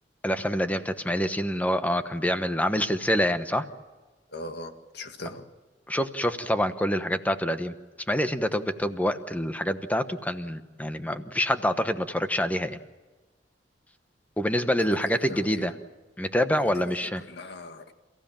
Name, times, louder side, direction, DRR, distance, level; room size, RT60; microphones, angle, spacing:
voice 1, 0.2-3.6 5.9-7.7 8.1-12.8 14.4-15.7 16.2-17.2, equal, 10° left, 9 dB, 1.1 m, -26 dB
voice 2, 4.3-5.4 14.8-15.0 15.3-15.7 16.5-16.9 17.3-17.9, left 1 dB, 65° left, 6 dB, 1.9 m, -40 dB
29.0 x 15.5 x 8.9 m, 1.3 s
head